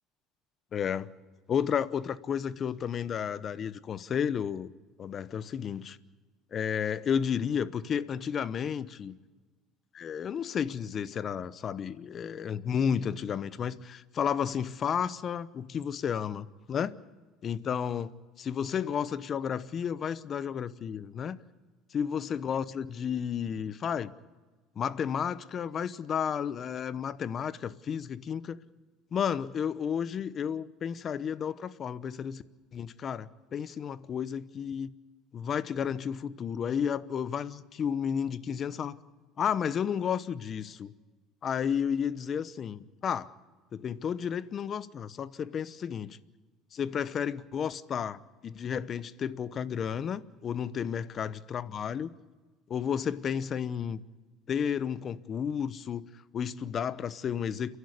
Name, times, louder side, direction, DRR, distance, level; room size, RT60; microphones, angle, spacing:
voice 1, 0.7-1.1 1.5-4.7 5.0-6.0 6.5-9.1 9.9-16.9 17.4-21.4 21.9-24.1 24.8-28.6 29.1-32.4 32.7-34.9 35.3-39.0 39.4-40.9 41.4-43.3 43.7-46.2 46.7-52.1 52.7-54.0 54.5-56.0 56.3-57.8, left 8 dB, 45° left, 0.9 m, -32 dB
29.5 x 11.5 x 9.7 m
supercardioid pair, 90°, 0 cm